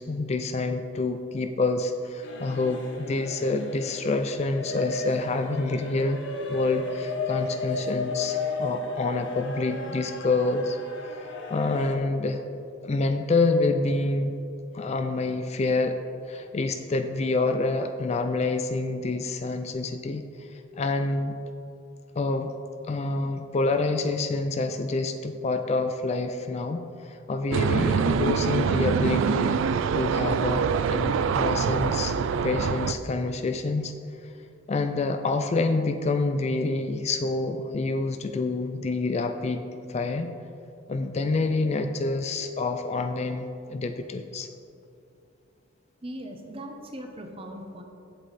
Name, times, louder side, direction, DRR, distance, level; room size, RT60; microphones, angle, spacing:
voice 1, 0.0-6.2 6.5-10.8 11.0-12.4 12.8-14.3 14.7-16.0 16.3-21.4 22.2-22.5 22.8-29.6 29.9-32.2 32.4-33.9 34.2-34.3 34.7-39.6 39.9-40.3 40.9-44.5, left 3 dB, 35° left, 7 dB, 0.3 m, -27 dB
sound 1, 2.2-12.0, left 3 dB, 65° left, 1.0 m, -34 dB
sound 2, 27.5-32.9, right 6 dB, 75° right, 0.3 m, -25 dB
voice 2, 46.0-47.8, equal, 30° right, 4 dB, 0.8 m, -39 dB
8.3 x 7.8 x 4.1 m, 2.6 s
head